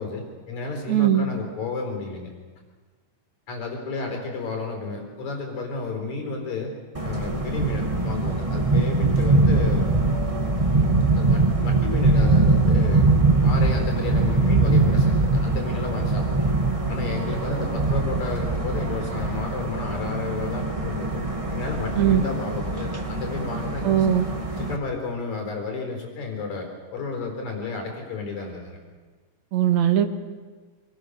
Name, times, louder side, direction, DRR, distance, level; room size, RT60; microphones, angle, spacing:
voice 1, 0.0-2.3 3.5-6.7 7.0-9.9 10.7-10.9 11.1-13.1 13.4-16.5 16.9-21.2 21.5-24.1 24.6-28.8, left 4 dB, 75° left, 2 dB, 5.5 m, -32 dB
voice 2, 0.9-1.3 22.0-22.2 23.8-24.3 29.5-30.1, right 10 dB, 70° right, 6 dB, 2.8 m, -19 dB
sound 1, 6.9-24.8, right 3 dB, 15° right, 1.5 m, -22 dB
26.5 x 23.5 x 6.5 m, 1.4 s
omnidirectional pair, 3.4 m